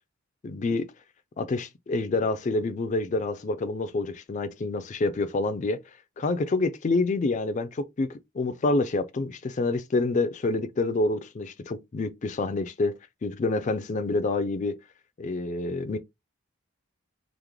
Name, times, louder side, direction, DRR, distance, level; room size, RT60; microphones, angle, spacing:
voice 1, 0.4-0.9 1.4-5.8 6.2-12.9 13.2-14.7 15.2-16.0, left 3 dB, 35° left, 0.3 m, -27 dB
3.6 x 2.0 x 3.1 m
head